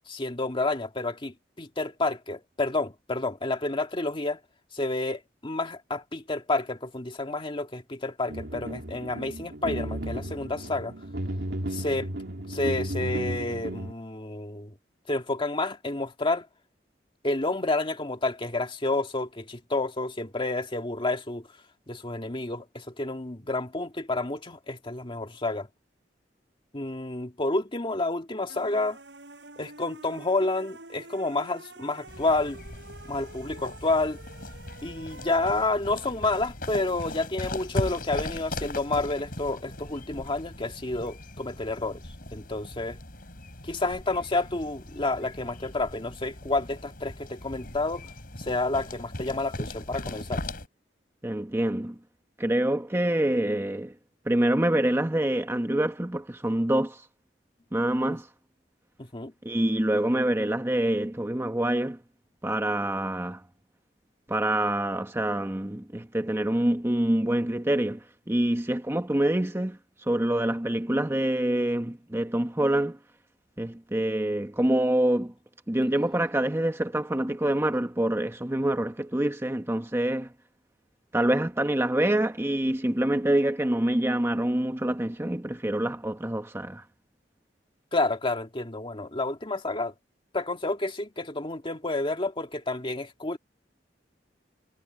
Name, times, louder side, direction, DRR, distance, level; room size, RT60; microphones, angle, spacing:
voice 1, 0.1-4.4 4.7-10.9 11.7-12.1 12.5-14.7 15.1-16.5 17.2-21.5 21.9-25.7 26.7-29.0 29.6-32.6 33.1-34.2 34.8-42.0 42.3-43.0 43.7-48.0 48.4-50.4 59.1-59.3 87.9-89.9 90.3-93.4, left 2 dB, 30° left, 2.0 m, -29 dB
sound 1, 8.3-13.9, right 1 dB, 70° right, 2.8 m, -34 dB
sound 2, 28.5-35.9, right 2 dB, 85° right, 7.7 m, -48 dB
sound 3, 32.1-50.7, left 1 dB, 55° left, 5.5 m, -39 dB
voice 2, 51.2-52.0 52.4-53.9 54.3-57.0 57.7-58.3 59.4-62.0 62.4-63.4 64.3-69.8 70.1-73.0 73.6-75.3 75.7-80.3 81.1-86.8, right 1 dB, 15° right, 1.0 m, -26 dB
head